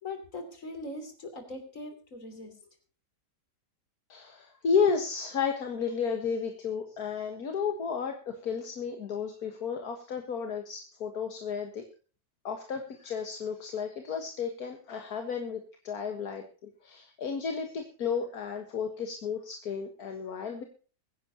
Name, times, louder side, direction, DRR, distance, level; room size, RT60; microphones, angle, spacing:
voice 1, 0.0-2.5, left 2 dB, 55° left, 6 dB, 3.5 m, -41 dB
voice 2, 4.1-11.8 12.4-20.6, left 6 dB, 75° left, 4 dB, 2.0 m, -32 dB
23.0 x 10.0 x 2.9 m, 0.36 s
omnidirectional pair, 1.6 m